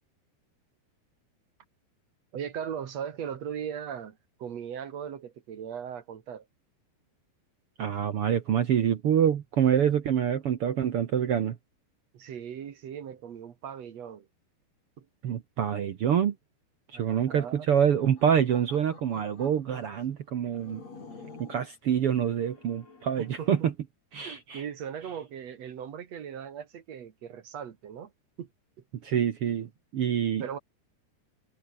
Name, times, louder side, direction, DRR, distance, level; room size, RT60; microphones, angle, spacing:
voice 1, 2.3-6.5 12.1-14.3 15.0-15.1 16.9-17.7 23.2-23.5 24.2-28.1 28.4-28.5 29.6-29.7 30.4-30.6, right 8 dB, 50° right, 2.3 m, -38 dB
voice 2, 7.8-11.6 15.2-16.3 16.9-20.8 21.4-23.7 24.1-24.6 29.0-30.6, right 9 dB, 75° right, 1.3 m, -26 dB
sound 1, 17.9-20.0 20.5-21.7 22.2-23.6, left 4 dB, 40° left, 6.4 m, -50 dB
omnidirectional pair, 4.6 m